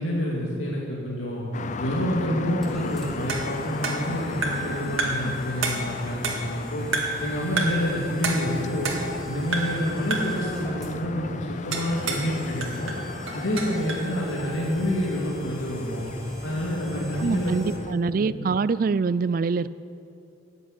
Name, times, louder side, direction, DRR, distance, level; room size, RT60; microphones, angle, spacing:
voice 1, 0.0-1.4 1.8-6.8 7.2-8.9 9.2-12.9 13.3-16.1 16.4-17.5 17.9-18.3, equal, 85° left, -4 dB, 2.4 m, -28 dB
sound 1, 1.5-17.9, left 4 dB, 35° left, 0.4 m, -37 dB
sound 2, 1.8-17.8, right 1 dB, ahead, 2.0 m, -45 dB
sound 3, 3.3-4.7 5.0-5.3 5.6-6.6 6.9-7.3 7.6-7.9 8.2-9.2 9.5-9.8 10.1-10.4 11.7-12.3 12.6-14.1, right 3 dB, 90° right, 2.1 m, -29 dB
voice 2, 17.2-19.7, right 4 dB, 45° right, 17 dB, 0.3 m, -24 dB
14.0 x 8.2 x 9.7 m, 2.7 s
head